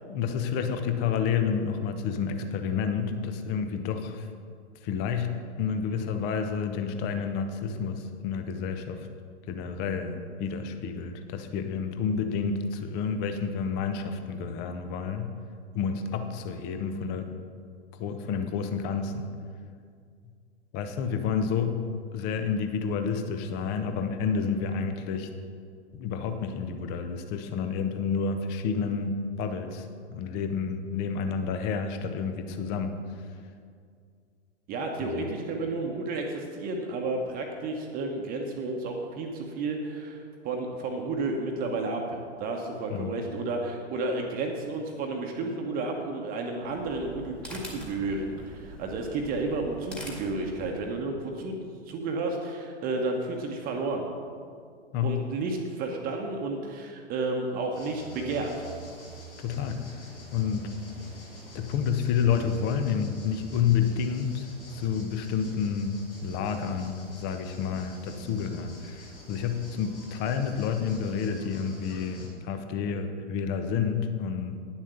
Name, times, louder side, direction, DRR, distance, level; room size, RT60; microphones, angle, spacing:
voice 1, 0.1-4.3 4.8-9.1 9.5-15.3 15.7-17.3 18.0-19.3 20.7-21.8 22.1-25.3 26.0-32.9 35.0-35.3 42.9-43.1 54.9-55.1 59.4-60.0 60.3-60.7 61.5-66.0 66.2-74.6, left 6 dB, 30° left, 7 dB, 0.9 m, -29 dB
voice 2, 34.7-51.6 51.9-54.1 55.0-58.5, right 3 dB, 25° right, 2 dB, 1.1 m, -32 dB
sound 1, 46.6-51.1, right 1 dB, 5° left, 1.8 m, -44 dB
sound 2, 57.7-72.3, right 2 dB, 70° left, 3.2 m, -46 dB
9.9 x 7.3 x 6.9 m, 2.2 s
figure-of-eight pair, 105°, 35 cm